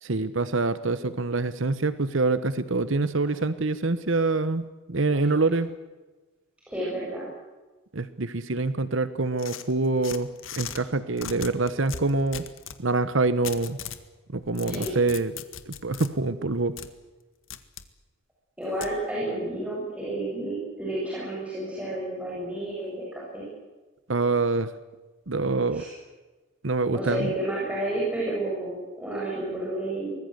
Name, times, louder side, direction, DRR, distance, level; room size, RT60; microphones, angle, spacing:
voice 1, 0.0-5.7 7.9-10.3 10.6-12.4 12.8-13.8 14.3-15.3 15.7-16.7 24.1-24.7 25.3-25.8 26.6-27.3, right 3 dB, 65° right, 14 dB, 1.1 m, -25 dB
voice 2, 6.7-7.3 14.6-15.0 18.6-23.4 25.7-25.9 26.9-30.2, right 1 dB, 5° right, -7 dB, 7.7 m, -31 dB
sound 1, 9.4-10.8 11.2-12.8 13.4-14.0 14.4-16.1 16.8-16.9 17.5-17.9 18.8-18.9, left 8 dB, 70° left, 1.8 m, -38 dB
24.5 x 20.0 x 8.0 m, 1.2 s
head